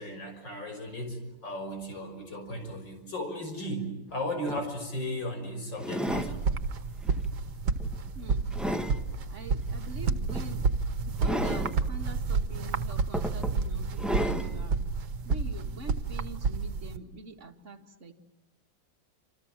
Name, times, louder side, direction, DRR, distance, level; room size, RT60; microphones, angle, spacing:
voice 1, 0.0-6.4, left 1 dB, 90° left, 5 dB, 6.6 m, -36 dB
sound 1, 4.1-4.2 4.5-4.7 5.8-6.4 7.0-7.3 7.8-9.0 10.3-10.5 11.2-11.7 12.6-12.7 13.1-13.6 14.0-14.5 15.3-15.4, equal, ahead, 1.3 m, -32 dB
sound 2, 6.1-17.0, right 4 dB, 65° right, 1.9 m, -30 dB
voice 2, 8.1-8.5 9.3-10.7 11.0-14.8 15.3-18.1, right 2 dB, 40° right, 4 dB, 2.2 m, -45 dB
28.5 x 28.0 x 7.5 m, 1.0 s
omnidirectional pair, 1.9 m